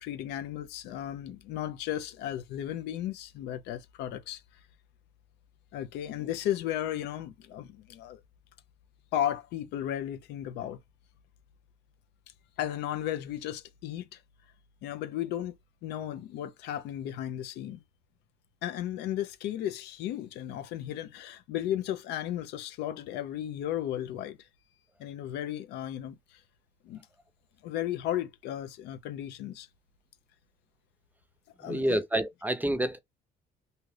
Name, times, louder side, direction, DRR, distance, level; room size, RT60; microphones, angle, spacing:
voice 1, 0.0-4.4 5.7-8.2 9.1-10.8 12.6-14.2 14.8-15.5 15.8-17.8 18.6-24.4 25.0-26.4 26.8-27.1 27.6-29.7 31.6-32.0, left 11 dB, 85° left, 0.5 m, -34 dB
voice 2, 31.6-33.0, right 1 dB, 10° right, 0.4 m, -28 dB
2.8 x 2.4 x 3.2 m
cardioid pair, 110°, 17 cm